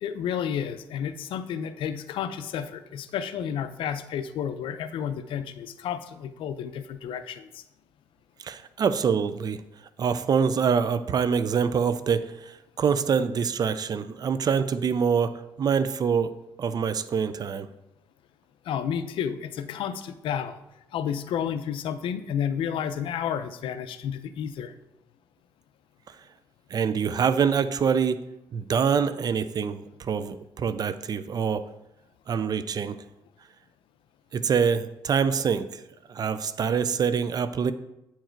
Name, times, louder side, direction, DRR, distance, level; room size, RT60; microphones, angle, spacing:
voice 1, 0.0-7.6 18.6-20.6 20.9-24.7, left 8 dB, 80° left, 12 dB, 0.5 m, -31 dB
voice 2, 8.4-9.6 10.0-16.3 16.6-17.7 26.7-28.2 28.5-31.7 32.3-33.0 34.3-35.8 36.1-37.7, right 6 dB, 50° right, 13 dB, 0.5 m, -25 dB
8.7 x 4.6 x 4.5 m, 0.89 s
cardioid pair, 90°, 9 cm